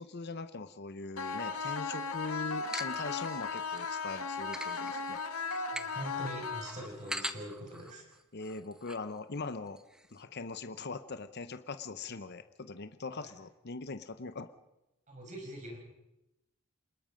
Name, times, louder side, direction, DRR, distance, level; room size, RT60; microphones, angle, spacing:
voice 1, 0.0-5.2 8.3-9.8 10.1-14.5, left 3 dB, 50° left, 10 dB, 0.8 m, -41 dB
sound 1, 1.2-7.2, left 4 dB, 90° left, 1.8 m, -37 dB
sound 2, 2.5-3.8 4.3-9.1 9.4-9.5 9.7-10.2, right 1 dB, 5° right, 0.9 m, -44 dB
voice 2, 5.7-8.0 13.1-13.3 15.1-15.8, right 1 dB, 35° right, 1 dB, 5.9 m, -43 dB
27.5 x 20.0 x 5.2 m, 0.93 s
head